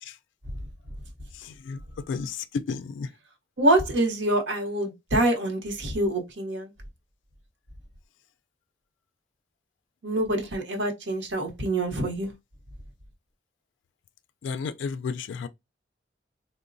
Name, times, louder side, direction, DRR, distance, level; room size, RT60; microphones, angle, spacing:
voice 1, 1.4-1.8 2.1-3.1 14.4-15.5, left 5 dB, 80° left, 0.3 m, -32 dB
voice 2, 3.6-6.7 10.0-12.3, right 1 dB, 75° right, 0.8 m, -25 dB
3.8 x 2.0 x 2.5 m
head